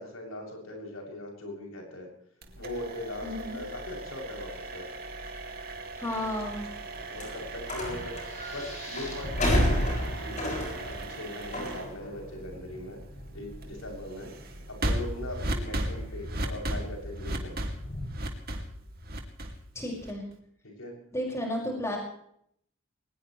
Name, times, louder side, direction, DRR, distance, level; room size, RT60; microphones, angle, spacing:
voice 1, 0.0-2.1 2.6-4.9 7.1-9.9 10.2-10.6 10.8-13.0 13.3-14.3 14.8-17.5 20.6-20.9, left 1 dB, 85° left, 0 dB, 7.3 m, -40 dB
sound 1, 2.4-20.3, right 1 dB, 45° right, 2.6 m, -37 dB
voice 2, 3.2-3.6 6.0-6.7 19.8-20.2 21.1-22.0, left 1 dB, 15° left, -1 dB, 5.6 m, -32 dB
sound 2, 6.1-18.1, left 1 dB, 35° left, 7.1 m, -34 dB
22.0 x 20.0 x 3.2 m, 0.67 s
head